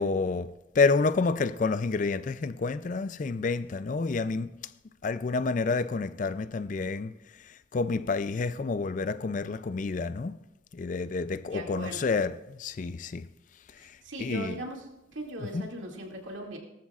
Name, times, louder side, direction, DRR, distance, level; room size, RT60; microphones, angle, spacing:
voice 1, 0.0-4.5 5.0-7.1 7.7-10.4 10.7-13.3 13.8-13.9 14.2-14.6 15.5-15.6, left 4 dB, 40° left, 0.3 m, -29 dB
voice 2, 11.5-12.1 13.8-16.6, right 1 dB, 70° right, 2.3 m, -39 dB
18.5 x 13.5 x 2.4 m
head